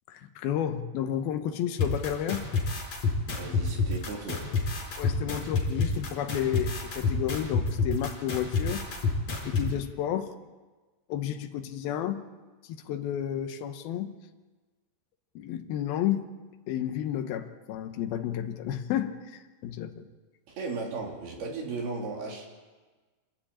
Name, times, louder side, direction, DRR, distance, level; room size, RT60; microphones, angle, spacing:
voice 1, 0.1-2.4 5.0-8.8 9.4-10.3 11.1-12.2 12.7-14.1 15.4-16.3 16.7-20.1, left 10 dB, 80° left, 6 dB, 3.0 m, -31 dB
sound 1, 1.8-9.7, left 4 dB, 45° left, 5.5 m, -28 dB
voice 2, 3.4-4.5 20.5-22.5, right 3 dB, 85° right, -1 dB, 5.2 m, -36 dB
28.0 x 13.0 x 8.7 m, 1.3 s
omnidirectional pair, 4.3 m